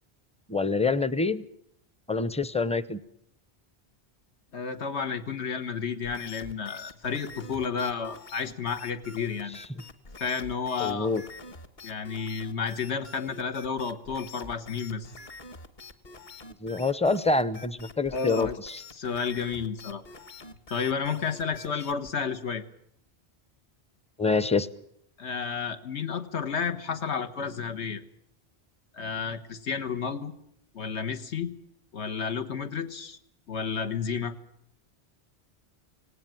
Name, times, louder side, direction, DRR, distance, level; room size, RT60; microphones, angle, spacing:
voice 1, 0.5-1.4 2.1-3.0 10.8-11.2 16.6-18.8 24.2-24.7, left 3 dB, 5° left, 16 dB, 0.6 m, -26 dB
voice 2, 4.5-9.6 10.2-11.1 11.8-15.1 18.1-18.6 18.9-20.0 20.7-22.6 25.2-28.0 28.9-30.3 30.7-31.5 31.9-33.2 33.5-34.3, left 6 dB, 85° left, 9 dB, 1.6 m, -31 dB
sound 1, 6.0-22.1, left 3 dB, 45° left, 1.5 m, -46 dB
18.5 x 18.0 x 9.1 m, 0.72 s
omnidirectional pair, 1.1 m